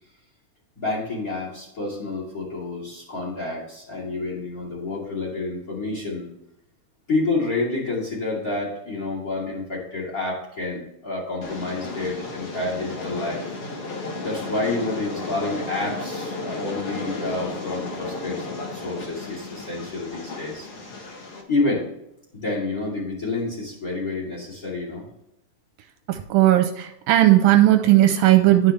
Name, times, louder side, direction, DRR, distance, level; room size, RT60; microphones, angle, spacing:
voice 1, 0.8-6.3 7.1-13.4 14.2-18.5 18.7-20.7 21.5-21.9 22.3-25.1, left 2 dB, 25° left, -3 dB, 2.5 m, -29 dB
Train, 11.4-21.4, left 3 dB, 65° left, 1.5 m, -33 dB
voice 2, 26.1-28.7, right 14 dB, 80° right, 7 dB, 2.2 m, -16 dB
12.0 x 5.7 x 3.2 m, 0.81 s
omnidirectional pair, 4.3 m